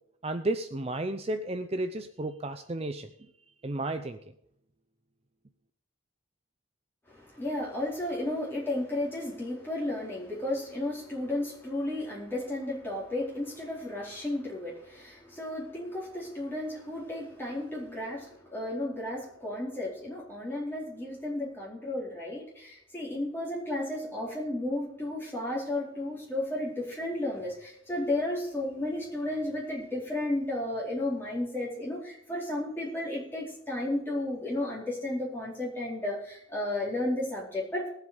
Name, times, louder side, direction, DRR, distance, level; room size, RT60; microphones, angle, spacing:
voice 1, 0.2-3.1 3.6-4.2, right 2 dB, 30° right, 8 dB, 0.5 m, -32 dB
voice 2, 7.1-37.9, left 1 dB, 10° left, -5 dB, 4.4 m, -33 dB
19.0 x 8.1 x 5.3 m, 0.75 s
head